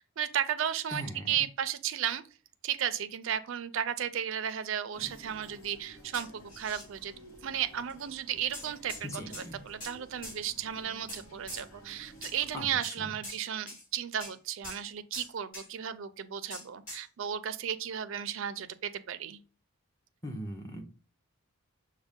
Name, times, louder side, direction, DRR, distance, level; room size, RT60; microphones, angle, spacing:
voice 1, 0.0-2.2 2.6-7.1 7.4-8.9 9.4-19.4, right 9 dB, 60° right, 0.4 m, -34 dB
voice 2, 0.9-1.4 9.0-9.6 12.5-13.1 20.2-20.8, equal, 15° left, 0.6 m, -40 dB
sound 1, 4.9-12.6, equal, 75° left, 1.1 m, -53 dB
sound 2, 6.1-6.9 7.9-8.0 8.5-9.0 9.3-9.9 10.2-10.4 11.1-11.6 12.2-12.4 12.8-13.0 13.2-13.4 13.7-13.8 14.2-14.3 14.6-14.8 15.1-15.7 16.5-17.0, left 1 dB, 40° left, 2.3 m, -43 dB
6.1 x 2.2 x 3.6 m
head